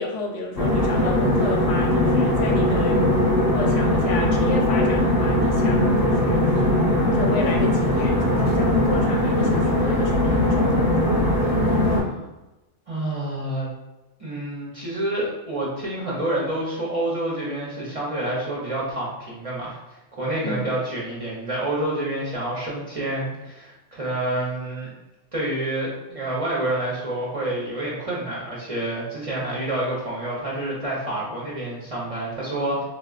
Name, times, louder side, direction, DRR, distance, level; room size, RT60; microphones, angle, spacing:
voice 1, 0.0-3.0 3.4-11.1 20.4-20.7, left 3 dB, 90° left, 1 dB, 0.9 m, -32 dB
sound 1, 0.5-12.0, left 1 dB, 20° left, 0.7 m, -20 dB
voice 2, 12.9-13.7 14.2-24.9 25.3-32.8, right 1 dB, 40° right, -6 dB, 0.5 m, -28 dB
3.6 x 2.1 x 2.3 m, 0.99 s
omnidirectional pair, 1.2 m